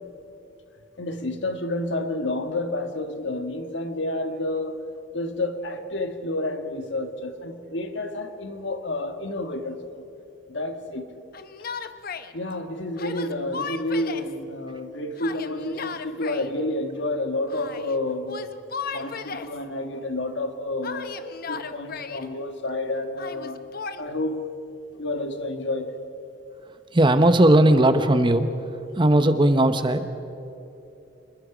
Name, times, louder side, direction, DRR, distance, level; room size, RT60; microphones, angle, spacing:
voice 1, 1.0-4.8 5.1-10.0 10.5-11.1 12.3-18.5 18.9-21.1 21.5-23.6 24.0-24.4 25.0-25.9, left 2 dB, 65° left, 7 dB, 1.6 m, -29 dB
Yell, 11.3-12.3 13.0-14.3 15.2-16.5 17.5-18.0 18.3-19.6 20.8-22.3 23.2-24.0, left 5 dB, 50° left, 0.8 m, -35 dB
voice 2, 26.9-28.5 29.0-30.1, right 1 dB, 25° right, 9 dB, 0.9 m, -17 dB
27.0 x 21.0 x 5.0 m, 2.9 s
head